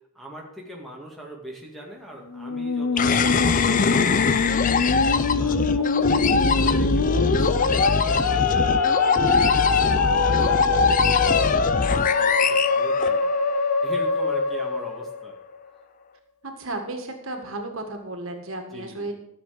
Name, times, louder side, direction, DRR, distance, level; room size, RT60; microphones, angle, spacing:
voice 1, 0.1-3.8 4.2-15.4 18.7-19.1, right 1 dB, ahead, -1 dB, 2.1 m, -42 dB
Musical instrument, 2.3-15.7, left 4 dB, 80° left, 0.8 m, -24 dB
sound 1, 3.0-13.6, left 4 dB, 35° left, 0.5 m, -22 dB
voice 2, 16.4-19.1, right 2 dB, 65° right, 4 dB, 1.9 m, -33 dB
13.0 x 7.0 x 6.7 m, 0.84 s
head